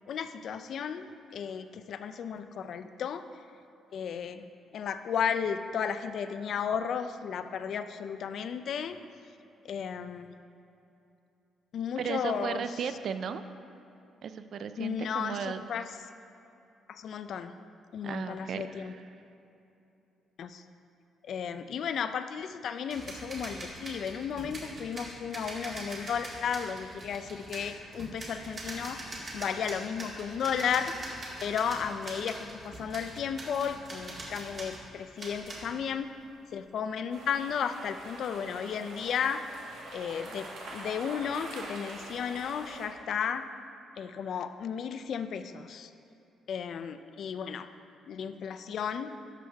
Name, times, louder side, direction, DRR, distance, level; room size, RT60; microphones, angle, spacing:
voice 1, 0.1-1.1 1.3-3.2 3.9-4.4 4.7-9.0 9.6-10.3 11.7-12.6 14.8-15.9 16.9-17.5 17.9-18.9 20.4-20.6 21.2-30.9 31.4-36.1 36.5-39.4 39.9-43.4 44.0-45.9 46.5-47.7 48.1-49.2, left 7 dB, 60° left, 10 dB, 0.4 m, -34 dB
voice 2, 12.0-13.4 14.2-15.7 18.0-19.1, right 7 dB, 55° right, 11 dB, 0.4 m, -35 dB
sound 1, 22.9-34.8 35.2-35.7, right 1 dB, 35° right, 1.7 m, -43 dB
sound 2, 37.1-42.9, right 2 dB, 90° right, 1.5 m, -44 dB
11.5 x 6.3 x 3.4 m, 2.8 s
cardioid pair, 130°, 0 cm